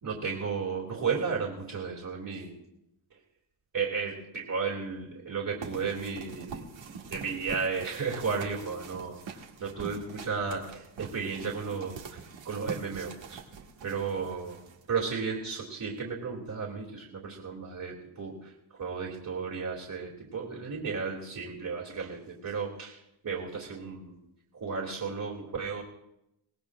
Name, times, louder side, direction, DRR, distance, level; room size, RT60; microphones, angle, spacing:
voice 1, 0.0-2.6 3.7-13.4 13.8-14.6 14.9-24.2 24.5-25.8, right 5 dB, 45° right, -4 dB, 2.7 m, -34 dB
sound 1, 5.6-15.1, right 5 dB, 65° right, 1.9 m, -44 dB
23.0 x 18.0 x 2.5 m, 0.87 s
cardioid pair, 100°, 48 cm